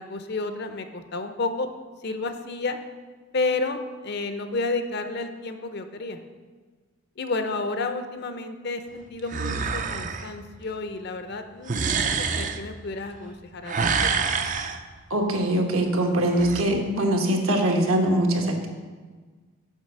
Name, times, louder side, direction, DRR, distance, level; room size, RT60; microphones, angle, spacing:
voice 1, 0.0-1.7 2.0-2.8 3.3-3.8 4.0-6.2 7.2-14.1, left 3 dB, 50° left, 8 dB, 0.6 m, -31 dB
sound 1, 9.3-10.3 11.7-12.6 13.6-14.8 16.3-16.6, right 5 dB, 35° right, 0.4 m, -26 dB
voice 2, 15.1-18.7, right 1 dB, 75° right, 2 dB, 1.3 m, -22 dB
7.4 x 5.3 x 6.5 m, 1.4 s
head